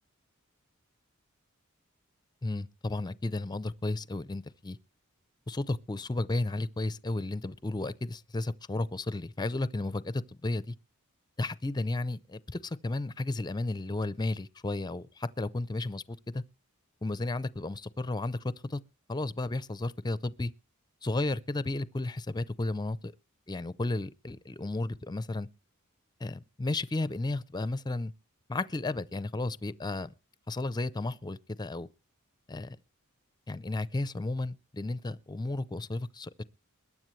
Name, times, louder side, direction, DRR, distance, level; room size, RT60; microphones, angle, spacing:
voice 1, 2.4-4.8 5.5-10.7 11.4-16.4 17.0-18.4 18.7-18.8 19.1-20.5 21.0-23.1 23.5-25.5 26.2-28.1 28.5-30.1 30.5-31.9 32.5-32.8 33.5-36.4, left 2 dB, 20° left, 0.6 m, -33 dB
21.5 x 9.7 x 3.2 m
head